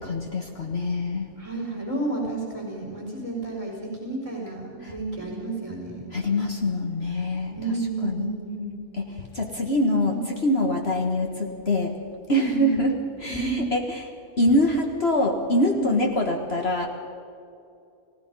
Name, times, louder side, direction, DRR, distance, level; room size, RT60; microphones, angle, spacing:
voice 1, 0.0-1.3 4.8-4.9 6.1-7.5 8.0-8.3 9.0-10.1 10.4-11.9 12.3-12.9 13.2-13.8 14.4-16.9, left 1 dB, 45° left, 2 dB, 1.7 m, -24 dB
voice 2, 1.4-6.1 7.5-8.8 9.6-10.2 12.3-12.8 13.3-13.7 15.7-15.9, right 2 dB, 20° right, -2 dB, 5.0 m, -31 dB
30.0 x 16.5 x 5.5 m, 2.6 s
omnidirectional pair, 1.6 m